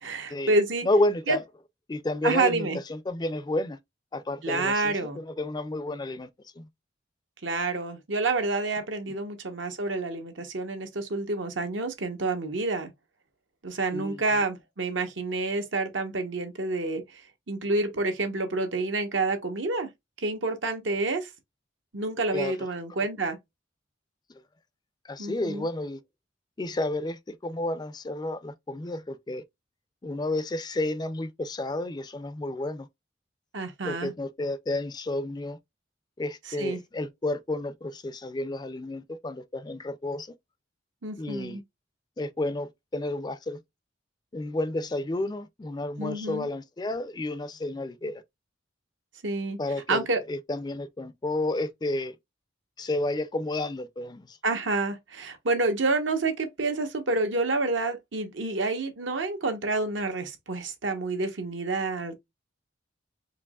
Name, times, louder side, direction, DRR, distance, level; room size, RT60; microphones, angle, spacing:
voice 1, 0.0-0.9 1.3-1.4 2.2-2.8 4.4-5.2 7.4-12.9 13.6-17.2 17.5-19.9 20.2-21.3 21.9-23.4 25.2-25.7 33.5-34.1 36.5-36.8 41.0-41.6 46.0-46.5 49.2-49.6 49.9-50.2 54.4-62.1, right 3 dB, 80° right, 1.1 m, -28 dB
voice 2, 0.8-1.4 1.9-3.8 4.1-6.3 6.6-6.7 13.9-14.2 22.3-22.6 25.0-26.0 26.6-29.4 30.0-32.9 33.8-35.6 36.2-40.3 41.2-41.6 42.2-43.6 44.3-48.2 49.6-52.1 52.8-54.4, left 2 dB, 20° left, 0.4 m, -31 dB
4.6 x 3.1 x 2.3 m
head